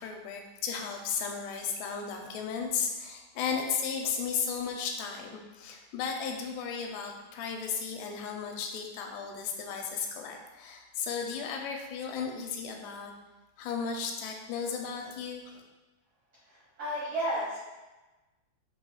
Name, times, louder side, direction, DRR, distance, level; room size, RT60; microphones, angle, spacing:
voice 1, 0.0-13.1 13.6-15.6, left 6 dB, 85° left, 2 dB, 2.5 m, -35 dB
voice 2, 16.5-17.6, right 1 dB, 85° right, -10 dB, 1.3 m, -32 dB
7.8 x 2.9 x 2.3 m, 1.1 s
omnidirectional pair, 4.7 m